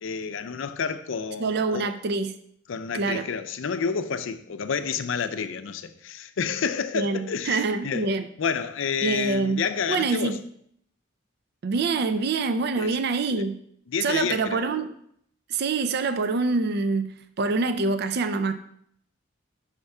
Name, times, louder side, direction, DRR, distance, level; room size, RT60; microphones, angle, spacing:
voice 1, 0.0-1.9 2.7-8.1 8.4-10.4 12.8-12.9 13.3-13.4 13.9-14.7, left 6 dB, 70° left, 0.4 m, -29 dB
voice 2, 1.4-2.3 2.9-3.3 6.9-8.3 9.0-9.6 9.9-10.4 11.6-13.6 14.0-14.9 15.5-18.5, right 3 dB, 55° right, 0.4 m, -25 dB
5.7 x 3.4 x 5.4 m
head